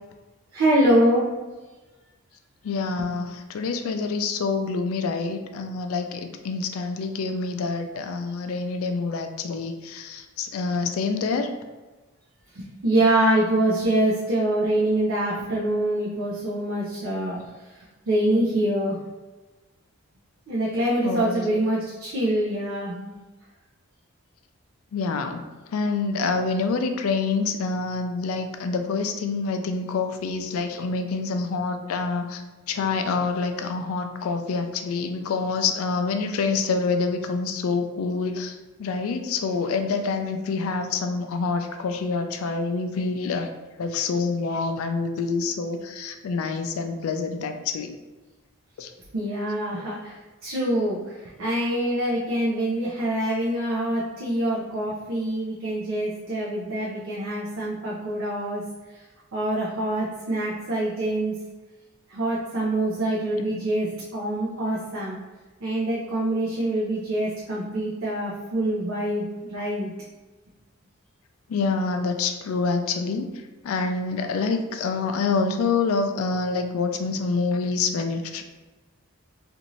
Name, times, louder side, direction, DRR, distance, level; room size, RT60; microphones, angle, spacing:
voice 1, 0.5-1.3 12.5-17.4 18.1-19.0 20.5-23.1 49.1-50.1 50.4-51.0 51.4-58.6 59.3-61.3 62.1-65.2 65.6-69.9, right 1 dB, 65° right, -6 dB, 0.5 m, -25 dB
voice 2, 2.6-11.5 21.0-21.5 24.9-25.4 25.7-32.4 32.7-43.5 43.8-47.9 48.8-48.9 63.5-63.6 71.5-73.3 73.6-78.4, left 4 dB, 75° left, 6 dB, 0.3 m, -27 dB
2.6 x 2.5 x 3.0 m, 1.2 s
head